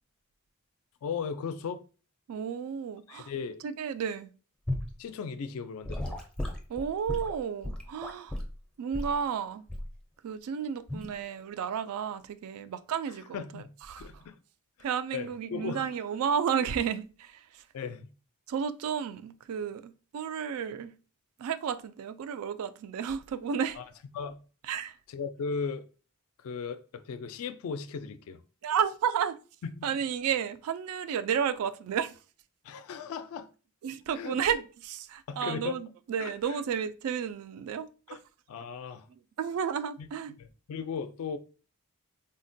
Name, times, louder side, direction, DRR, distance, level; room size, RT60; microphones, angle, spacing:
voice 1, 1.0-1.8 3.1-3.6 5.0-6.2 13.3-14.3 15.1-15.9 17.7-18.1 23.8-23.9 24.1-24.4 25.1-25.9 26.4-28.4 29.7-29.9 32.6-33.5 34.1-34.4 35.3-35.8 36.2-36.6 38.1-38.2 38.5-39.1 40.0-40.1 40.4-41.4, left 5 dB, 70° left, 0.3 m, -37 dB
voice 2, 2.3-3.3 3.6-4.3 6.7-8.4 8.8-9.7 10.2-13.6 13.9-14.1 14.8-17.6 18.5-20.9 21.4-23.8 24.7-25.0 28.6-29.4 29.8-32.1 33.8-37.9 39.4-40.4, right 7 dB, 75° right, 0.3 m, -32 dB
Gurgling / Sink (filling or washing) / Liquid, 4.7-4.9 5.8-8.5 8.9-9.2 9.7-10.0 10.9-11.1, left 1 dB, 5° left, 0.4 m, -35 dB
3.7 x 2.1 x 2.6 m
head